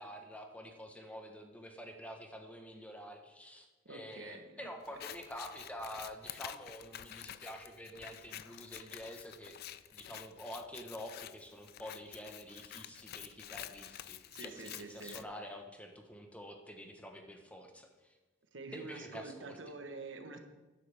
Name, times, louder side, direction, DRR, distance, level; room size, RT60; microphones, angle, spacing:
voice 1, 0.0-18.1 18.7-19.6, equal, 5° left, 4 dB, 1.1 m, -48 dB
voice 2, 3.8-4.7 14.3-15.2 18.5-20.4, right 3 dB, 80° right, 6 dB, 1.2 m, -47 dB
Scissors, 4.8-15.2, left 12 dB, 55° left, 0.4 m, -49 dB
12.5 x 10.0 x 3.5 m, 1.2 s
head